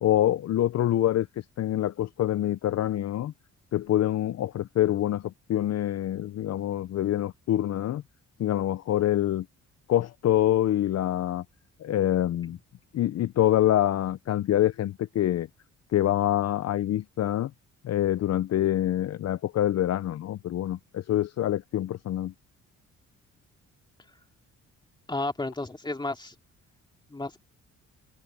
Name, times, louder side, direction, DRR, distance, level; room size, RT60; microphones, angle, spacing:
voice 1, 0.0-1.3 1.6-3.3 3.7-8.0 8.4-9.5 9.9-11.4 11.8-12.6 12.9-15.5 15.9-17.5 17.8-22.3, left 12 dB, 60° left, 0.7 m, -25 dB
voice 2, 25.1-26.3 27.1-27.4, left 2 dB, 15° left, 2.5 m, -32 dB
cardioid pair, 90°, 30 cm